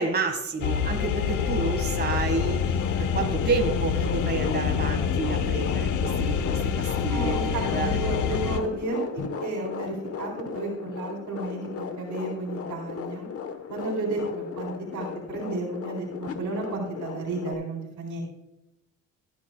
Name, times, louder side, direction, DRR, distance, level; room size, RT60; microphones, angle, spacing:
voice 1, 0.0-7.9, right 4 dB, 35° right, 5 dB, 1.7 m, -30 dB
sound 1, 0.6-8.6, left 7 dB, 80° left, 0.9 m, -27 dB
sound 2, 1.4-17.5, left 6 dB, 50° left, 1.2 m, -36 dB
voice 2, 7.1-13.3 13.7-18.2, right 2 dB, 75° right, -1 dB, 3.6 m, -32 dB
16.5 x 9.6 x 2.3 m, 0.91 s
cardioid pair, 90°, 30 cm